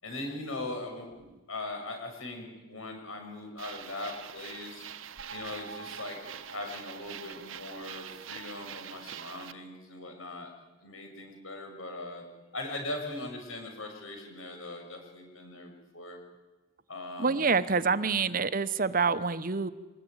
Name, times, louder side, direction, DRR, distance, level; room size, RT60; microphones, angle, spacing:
voice 1, 0.0-4.8 5.3-10.5 10.8-12.2 12.5-16.2 16.9-17.6 18.1-18.3, left 2 dB, 80° left, 4 dB, 6.8 m, -40 dB
sound 1, 3.6-9.5, right 8 dB, 75° right, 1.0 m, -44 dB
voice 2, 17.2-19.7, right 4 dB, 40° right, 14 dB, 0.9 m, -27 dB
24.5 x 20.0 x 9.7 m, 1.2 s
head